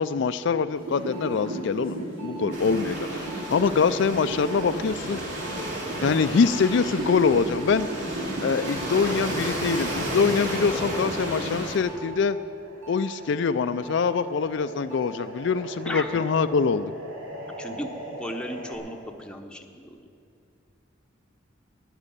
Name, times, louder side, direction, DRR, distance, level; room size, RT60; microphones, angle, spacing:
voice 1, 0.0-5.2 6.0-7.9 8.4-12.4 12.9-16.9, left 5 dB, 65° left, 11 dB, 0.4 m, -24 dB
sound 1, 0.7-12.0 12.4-18.8, right 1 dB, 85° right, 3.1 m, -37 dB
Waves surf, 2.5-11.8, right 1 dB, 65° right, 2.9 m, -33 dB
voice 2, 15.8-16.3 17.6-17.9 18.2-20.0, equal, 5° left, 3 dB, 0.8 m, -35 dB
12.0 x 8.2 x 9.9 m, 2.5 s
head